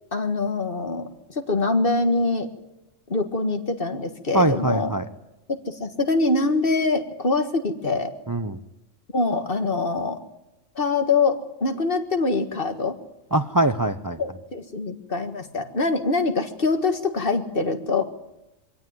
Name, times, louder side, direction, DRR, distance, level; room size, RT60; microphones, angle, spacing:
voice 1, 0.1-2.5 3.1-4.9 5.5-8.1 9.1-10.2 10.7-13.0 14.2-18.0, left 3 dB, 45° left, 7 dB, 1.8 m, -24 dB
voice 2, 4.3-5.0 8.3-8.6 13.3-14.2, right 1 dB, 20° right, 10 dB, 0.6 m, -22 dB
23.5 x 17.0 x 9.6 m, 0.96 s
omnidirectional pair, 1.3 m